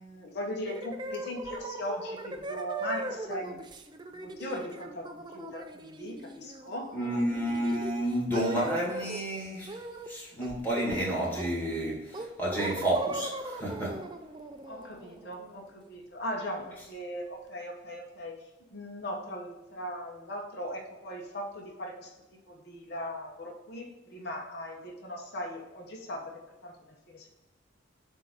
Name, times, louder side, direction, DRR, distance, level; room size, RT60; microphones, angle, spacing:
voice 1, 0.0-3.6 4.1-6.9 14.6-18.4 18.7-22.1 22.5-26.3 26.6-27.3, equal, 55° left, -1 dB, 1.0 m, -39 dB
sound 1, 0.7-9.2 9.7-10.1 10.4-11.7 12.1-15.9, right 2 dB, 20° right, 0.4 m, -39 dB
voice 2, 6.9-9.8 10.1-14.0, right 1 dB, 10° left, -5 dB, 1.9 m, -30 dB
7.5 x 2.7 x 5.1 m, 1.1 s
head